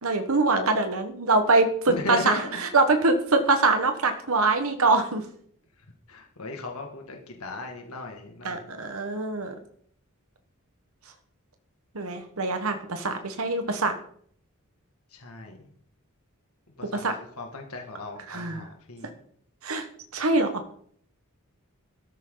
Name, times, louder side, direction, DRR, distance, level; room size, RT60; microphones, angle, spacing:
voice 1, 0.0-5.2 8.4-9.5 11.9-13.9 16.9-17.1 18.3-18.7 19.6-19.9 20.1-20.5, right 3 dB, 70° right, 6 dB, 1.4 m, -24 dB
voice 2, 1.9-2.6 6.1-8.7 15.1-15.6 16.8-17.0 17.4-19.1, left 2 dB, 85° left, 2 dB, 2.2 m, -37 dB
16.0 x 13.5 x 4.0 m, 0.64 s
head